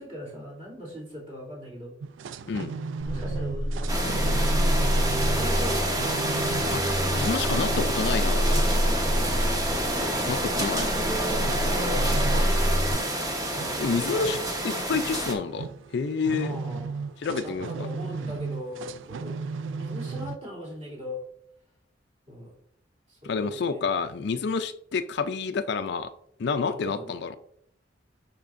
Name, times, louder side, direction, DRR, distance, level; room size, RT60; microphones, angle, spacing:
voice 1, 0.0-1.9 3.1-5.8 7.1-8.0 8.7-9.5 10.4-12.7 13.5-14.5 16.3-19.4 19.6-21.2 22.3-22.5 23.1-23.8 26.5-27.2, equal, 40° right, -5 dB, 2.9 m, -40 dB
sound 1, 2.0-20.4, right 5 dB, 85° right, 0.4 m, -37 dB
sound 2, 3.0-12.9, equal, 65° right, 2.2 m, -27 dB
sound 3, 3.9-15.3, right 1 dB, 20° right, 1.0 m, -28 dB
voice 2, 6.7-8.6 10.3-10.8 13.8-14.4 14.6-15.7 15.9-16.6 17.2-17.7 23.2-26.1 26.4-27.4, left 5 dB, 60° left, 10 dB, 0.4 m, -28 dB
10.5 x 4.5 x 2.5 m, 0.70 s
head